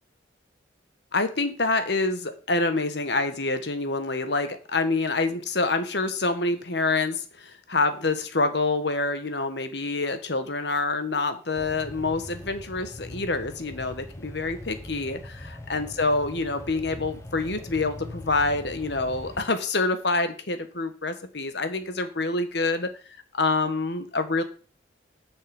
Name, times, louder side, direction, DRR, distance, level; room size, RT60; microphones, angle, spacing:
voice 1, 1.1-22.9 23.3-24.4, left 3 dB, 65° left, 9 dB, 1.4 m, -27 dB
sound 1, 11.6-19.5, left 1 dB, 15° left, 0.9 m, -41 dB
7.8 x 6.9 x 7.0 m, 0.40 s
head